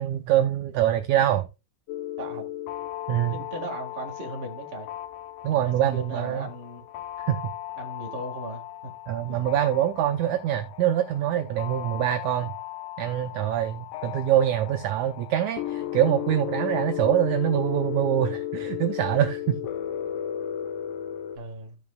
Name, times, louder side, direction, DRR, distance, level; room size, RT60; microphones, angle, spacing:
voice 1, 0.0-1.5 3.1-3.4 5.4-6.5 7.3-7.4 9.1-12.5 13.0-19.6, right 11 dB, 85° right, 1.7 m, -24 dB
sound 1, 1.9-21.4, left 12 dB, 75° left, 2.3 m, -35 dB
voice 2, 3.3-4.9 5.5-6.9 7.8-8.9 9.3-9.4 21.3-21.8, right 1 dB, 65° right, 0.6 m, -37 dB
15.0 x 5.2 x 2.2 m
omnidirectional pair, 4.1 m